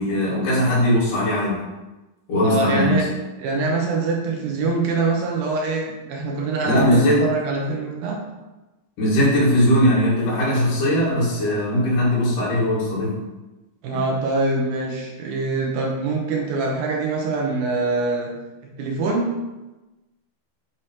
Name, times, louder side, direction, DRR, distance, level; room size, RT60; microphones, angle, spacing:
voice 1, 0.0-1.5 2.3-3.1 6.6-7.3 9.0-13.2, equal, 65° left, -6 dB, 3.7 m, -19 dB
voice 2, 2.4-3.1 3.4-8.2 13.8-18.3 18.6-19.3, right 3 dB, 85° right, -1 dB, 2.9 m, -24 dB
8.1 x 3.1 x 4.6 m, 1.1 s
omnidirectional pair, 4.2 m